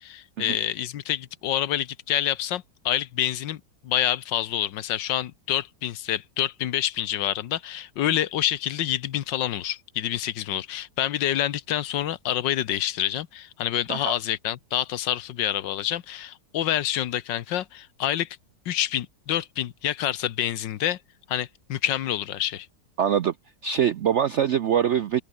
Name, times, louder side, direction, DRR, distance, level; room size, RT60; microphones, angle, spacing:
voice 1, 0.0-18.3 18.7-21.0 21.3-22.7, left 11 dB, 80° left, 1.6 m, -27 dB
voice 2, 23.0-23.3 23.6-25.2, right 9 dB, 70° right, 0.6 m, -23 dB
open air
omnidirectional pair, 1.9 m